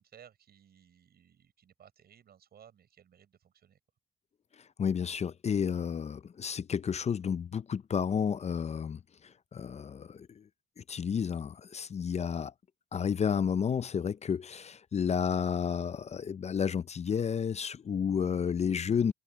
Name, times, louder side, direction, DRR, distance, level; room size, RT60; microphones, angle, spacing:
voice 1, 0.0-3.8, right 9 dB, 70° right, 6.4 m, -59 dB
voice 2, 4.8-10.4 10.8-12.5 12.9-19.1, left 7 dB, 40° left, 0.5 m, -31 dB
cardioid pair, 75°, 17 cm